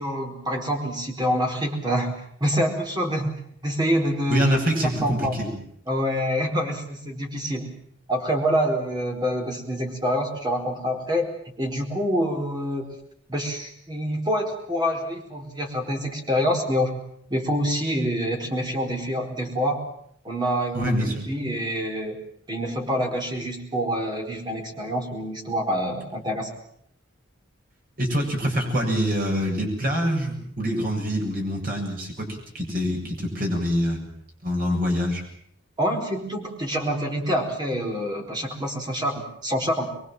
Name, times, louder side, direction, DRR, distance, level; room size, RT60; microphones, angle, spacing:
voice 1, 0.0-3.3 3.6-4.6 5.0-5.4 5.9-7.7 8.1-11.3 11.6-13.0 13.3-17.0 17.3-19.8 20.2-22.2 22.5-26.5 35.8-39.9, equal, 20° right, 2 dB, 4.6 m, -26 dB
voice 2, 4.3-5.6 20.7-21.3 28.0-34.0 34.4-35.2, equal, 45° right, 1 dB, 7.5 m, -25 dB
24.5 x 22.5 x 7.7 m, 0.67 s
head